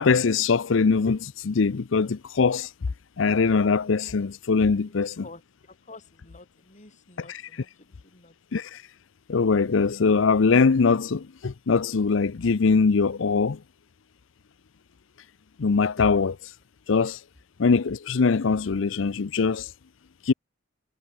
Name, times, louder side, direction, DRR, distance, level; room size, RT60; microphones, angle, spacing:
voice 1, 0.0-2.7 3.2-5.2 7.3-7.6 8.5-8.9 9.3-13.6 15.6-16.6 16.9-17.2 17.6-19.7 20.2-20.3, left 4 dB, 70° left, 0.6 m, -22 dB
voice 2, 5.2-8.4, left 2 dB, 40° left, 5.8 m, -49 dB
head